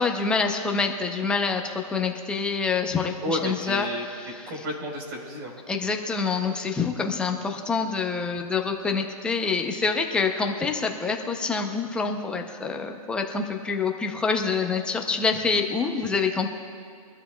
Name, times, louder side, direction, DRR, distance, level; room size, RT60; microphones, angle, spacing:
voice 1, 0.0-4.6 5.7-16.5, left 4 dB, 5° left, 3 dB, 0.6 m, -26 dB
voice 2, 3.2-4.0 4.5-5.5, equal, 35° right, 0 dB, 4.0 m, -31 dB
24.0 x 13.0 x 2.3 m, 2.2 s
hypercardioid pair, 165°, 19 cm